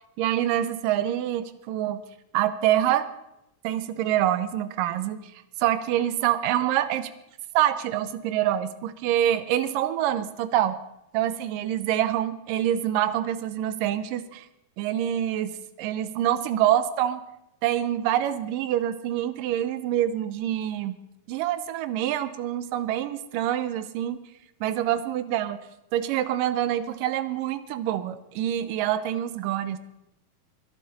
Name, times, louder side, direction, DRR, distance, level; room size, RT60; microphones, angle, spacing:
voice 1, 0.2-2.0 2.3-3.1 3.6-5.3 5.6-7.1 7.5-10.8 11.1-14.5 14.8-17.2 17.6-21.0 21.3-24.2 24.6-25.6 25.9-29.8, right 11 dB, 85° right, 13 dB, 2.4 m, -26 dB
22.0 x 11.5 x 4.2 m, 0.86 s
omnidirectional pair, 4.0 m